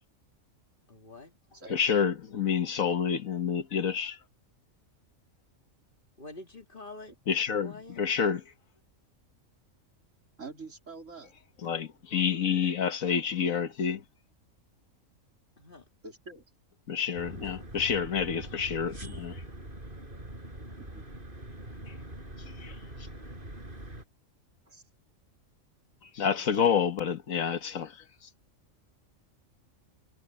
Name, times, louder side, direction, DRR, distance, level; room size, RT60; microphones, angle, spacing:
voice 1, 0.9-1.4 6.2-7.1 7.6-8.0 15.6-15.8, left 2 dB, 40° left, 2.6 m, -46 dB
voice 2, 1.7-4.2 7.3-8.4 11.6-14.0 16.9-19.4 21.9-22.0 22.4-22.8 26.0-28.0, left 7 dB, 80° left, 1.7 m, -28 dB
voice 3, 10.4-11.3 16.0-16.4 20.8-21.0 24.7-24.8, right 4 dB, 70° right, 4.0 m, -45 dB
sound 1, 17.1-24.1, right 1 dB, 40° right, 6.4 m, -43 dB
omnidirectional pair, 1.4 m